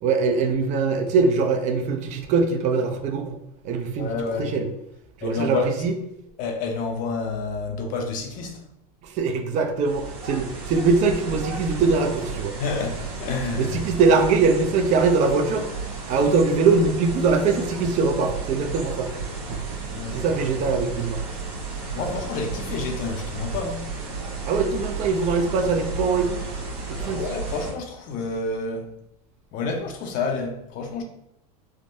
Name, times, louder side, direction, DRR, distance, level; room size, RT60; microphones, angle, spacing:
voice 1, 0.0-3.4 3.6-4.1 4.4-4.7 5.2-5.9 9.0-12.5 13.6-15.7 16.1-19.1 19.5-19.6 20.1-21.2 21.9-22.2 24.5-26.4 26.9-27.2, right 4 dB, 40° right, 5 dB, 0.4 m, -22 dB
voice 2, 4.0-4.5 5.2-5.7 6.4-8.6 12.6-13.8 19.9-20.3 21.9-23.9 27.0-28.9 29.5-31.0, left 4 dB, 45° left, 4 dB, 0.6 m, -29 dB
sound 1, 9.8-27.7, right 4 dB, 75° right, 1.3 m, -33 dB
3.5 x 2.0 x 2.5 m, 0.79 s
supercardioid pair, 120°, 20 cm